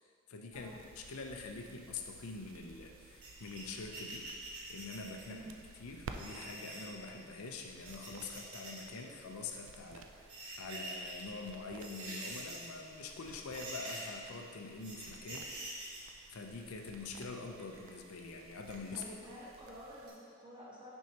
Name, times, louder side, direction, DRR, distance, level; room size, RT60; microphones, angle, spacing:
voice 1, 0.3-4.3 4.7-5.4 5.8-15.5 16.3-19.0, left 3 dB, 80° left, 2 dB, 0.5 m, -45 dB
sound 1, 0.5-20.1, right 4 dB, 65° right, 0.4 m, -55 dB
sound 2, 3.2-5.4 6.1-6.9 7.6-8.8 9.1-9.2 10.1-11.2 11.7-12.8 13.1-13.2 13.5-14.2 14.8-16.1 17.1-17.9 18.7-19.3 19.7-19.8 20.1-20.2, right 2 dB, 85° right, 1.1 m, -46 dB
voice 2, 5.2-5.6 18.9-20.9, equal, 20° right, -7 dB, 1.2 m, -50 dB
6.1 x 5.4 x 2.9 m, 2.2 s
head